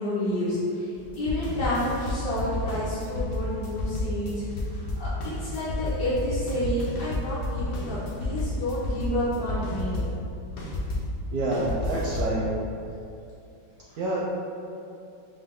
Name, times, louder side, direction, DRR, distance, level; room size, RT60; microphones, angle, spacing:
voice 1, 0.0-4.3 4.7-5.1 5.4-10.1 13.9-14.2, left 1 dB, 65° left, -11 dB, 1.3 m, -30 dB
sound 1, 0.9-11.1 11.5-12.4, left 2 dB, 90° left, 0.5 m, -31 dB
voice 2, 11.3-12.5 14.0-14.2, right 2 dB, 75° right, -5 dB, 0.9 m, -27 dB
5.4 x 2.2 x 3.6 m, 2.6 s
omnidirectional pair, 2.0 m